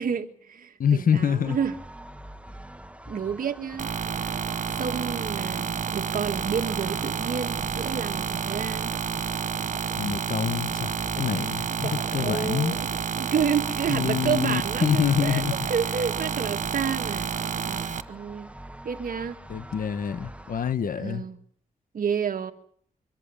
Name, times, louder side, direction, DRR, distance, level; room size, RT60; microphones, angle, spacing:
voice 1, 0.0-1.8 3.1-3.9 4.8-8.9 11.8-15.4 15.7-17.3 17.7-18.5 18.8-19.4 21.0-21.4 21.9-22.5, right 7 dB, 75° right, 1.8 m, -30 dB
voice 2, 0.8-1.6 10.0-12.8 13.9-15.6 19.5-21.3, left 8 dB, 75° left, 1.5 m, -26 dB
sound 1, 1.4-20.7, right 1 dB, 10° right, 1.2 m, -43 dB
sound 2, 3.8-18.0, right 6 dB, 60° right, 1.1 m, -30 dB
25.0 x 14.5 x 9.9 m
cardioid pair, 75°, 15 cm